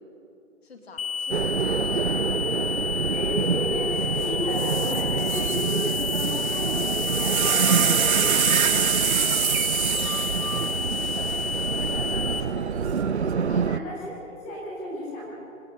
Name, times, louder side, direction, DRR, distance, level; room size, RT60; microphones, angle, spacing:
voice 1, 0.6-2.1 6.3-6.6 9.0-11.3 13.5-13.7, left 3 dB, 50° left, 2 dB, 2.5 m, -45 dB
sound 1, 1.0-12.4, left 6 dB, 90° left, 0.9 m, -30 dB
sound 2, 1.3-13.8, right 6 dB, 55° right, 0.6 m, -27 dB
voice 2, 3.1-9.0 11.7-15.3, equal, 10° left, -6 dB, 3.3 m, -33 dB
sound 3, 4.2-4.3 4.6-12.0 12.8-13.3, right 8 dB, 90° right, 0.9 m, -26 dB
26.0 x 11.5 x 8.5 m, 2.6 s
hypercardioid pair, 180°, 41 cm